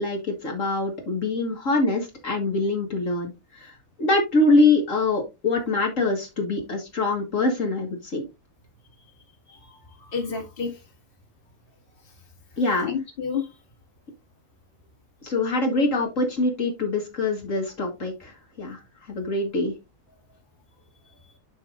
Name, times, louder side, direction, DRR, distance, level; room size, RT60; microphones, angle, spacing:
voice 1, 0.0-8.3 12.6-12.9 15.2-18.8 19.1-19.8, left 2 dB, 65° left, 1 dB, 2.1 m, -24 dB
voice 2, 9.5-10.8 12.8-13.5, left 6 dB, 40° left, 3 dB, 2.2 m, -30 dB
11.5 x 5.1 x 2.5 m, 0.23 s
omnidirectional pair, 1.5 m